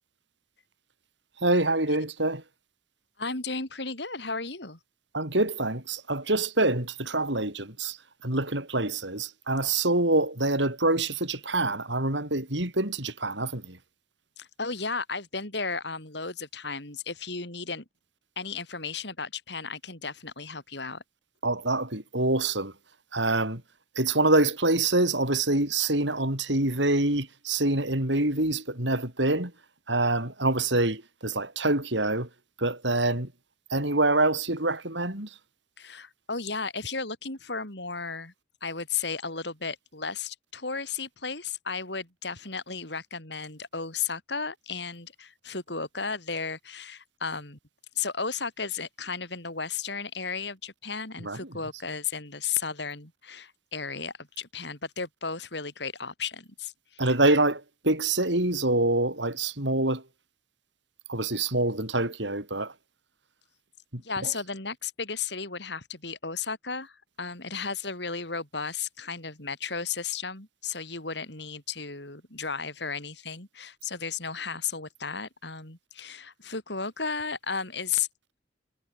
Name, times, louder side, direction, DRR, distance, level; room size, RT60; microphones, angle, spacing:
voice 1, 1.4-2.4 5.1-8.0 8.2-13.8 21.4-22.7 23.1-23.6 23.9-29.5 29.9-32.3 32.6-33.3 33.7-35.3 51.2-51.4 57.0-60.0 61.1-62.7 63.9-64.3, right 2 dB, 75° right, 6.7 m, -26 dB
voice 2, 3.2-4.8 14.4-17.8 18.4-21.0 35.8-38.3 38.6-47.6 48.0-57.1 64.0-78.1, left 5 dB, 70° left, 5.2 m, -34 dB
head